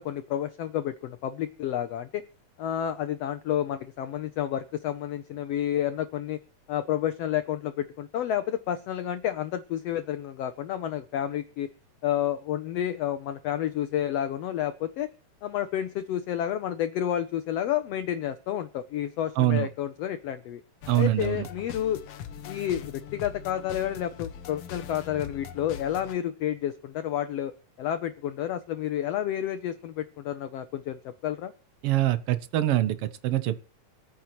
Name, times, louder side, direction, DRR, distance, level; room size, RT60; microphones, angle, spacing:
voice 1, 0.0-2.2 2.6-6.4 6.7-11.7 12.0-15.1 15.4-20.6 21.0-22.0 22.5-27.5 27.8-31.5, left 11 dB, 85° left, 10 dB, 1.4 m, -30 dB
voice 2, 19.4-19.7 20.9-21.5 31.8-33.6, right 14 dB, 75° right, 13 dB, 1.4 m, -24 dB
sound 1, 20.8-26.1, left 8 dB, 65° left, 1.6 m, -41 dB
25.5 x 9.3 x 3.1 m, 0.36 s
omnidirectional pair, 3.7 m